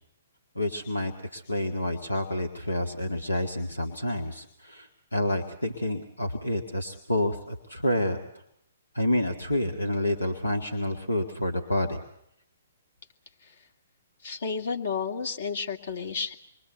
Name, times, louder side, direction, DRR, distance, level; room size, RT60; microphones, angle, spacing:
voice 1, 0.6-8.2 8.9-12.0, left 1 dB, 90° left, 4 dB, 2.0 m, -29 dB
voice 2, 14.2-16.3, left 5 dB, 60° left, 4 dB, 2.5 m, -31 dB
26.5 x 23.0 x 8.2 m, 0.76 s
figure-of-eight pair, 125°, 0 cm